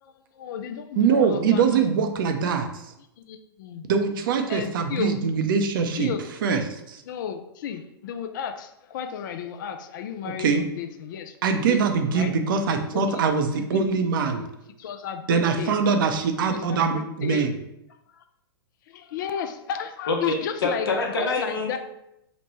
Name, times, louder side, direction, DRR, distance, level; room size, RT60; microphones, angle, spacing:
voice 1, 0.0-1.9 3.3-3.9 4.5-5.2 6.0-6.2 7.1-12.3 12.9-13.2 13.6-13.9 14.4-14.5 14.8-15.7 16.5-17.5 18.2-18.3 18.9-20.9 21.4-21.8, left 8 dB, 55° left, 8 dB, 0.4 m, -33 dB
voice 2, 1.0-2.8 3.9-6.1 6.4-7.0 10.2-10.6 11.4-14.4 15.3-17.5, right 5 dB, 60° right, 6 dB, 0.5 m, -23 dB
voice 3, 20.6-21.8, left 3 dB, 70° left, 0 dB, 0.9 m, -25 dB
3.1 x 2.1 x 4.1 m, 0.82 s
hypercardioid pair, 110°, 13 cm